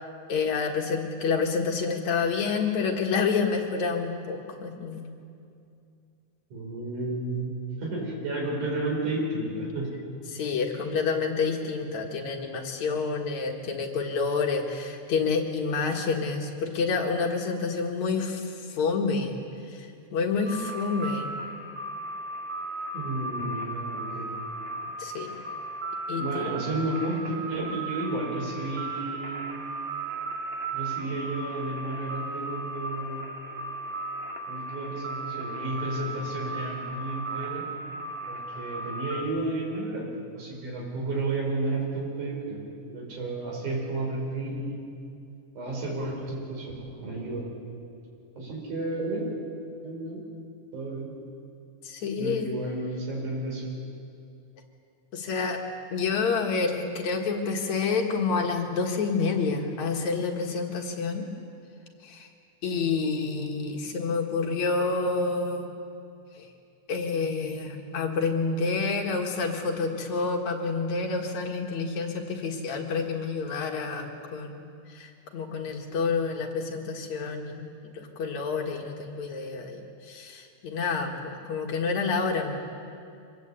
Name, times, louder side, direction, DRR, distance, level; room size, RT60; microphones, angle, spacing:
voice 1, 0.3-5.0 10.3-19.4 19.6-21.3 25.0-25.3 26.1-26.5 51.8-52.5 55.1-55.6 55.9-61.3 62.0-62.3 62.6-65.7 66.3-66.5 66.9-82.5, left 4 dB, 65° left, 2 dB, 3.0 m, -28 dB
voice 2, 6.5-9.9 22.9-24.3 26.1-29.6 30.7-33.3 34.5-37.7 38.3-44.9 45.5-46.7 47.0-47.5 48.4-49.3 49.8-50.2 50.7-51.1 52.2-53.8, right 2 dB, 70° right, -1 dB, 6.4 m, -32 dB
sound 1, 20.4-39.2, right 2 dB, 90° right, 3.5 m, -36 dB
25.0 x 20.5 x 8.3 m, 2.5 s
omnidirectional pair, 3.6 m